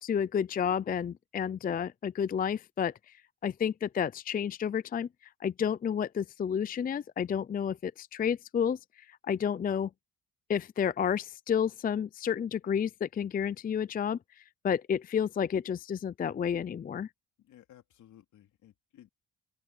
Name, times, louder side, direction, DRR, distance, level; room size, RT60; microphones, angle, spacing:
voice 1, 0.0-2.9 3.4-5.1 5.4-8.8 9.3-9.9 10.5-17.1, left 8 dB, 30° left, 0.4 m, -30 dB
voice 2, 17.4-19.1, left 12 dB, 75° left, 3.4 m, -57 dB
open air
cardioid pair, 90°, 30 cm